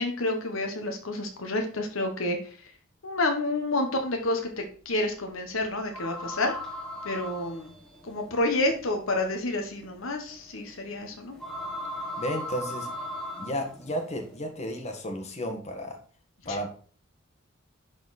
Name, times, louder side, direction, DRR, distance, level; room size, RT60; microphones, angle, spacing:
voice 1, 0.0-2.4 3.0-6.6 7.0-7.7 8.0-11.4 16.4-16.6, left 2 dB, 80° left, 4 dB, 1.3 m, -29 dB
sound 1, 5.9-14.4, left 1 dB, 5° left, 1.7 m, -39 dB
voice 2, 12.2-12.9 13.4-16.0 16.4-16.7, equal, 35° left, 3 dB, 1.5 m, -33 dB
11.0 x 4.3 x 4.2 m, 0.43 s
head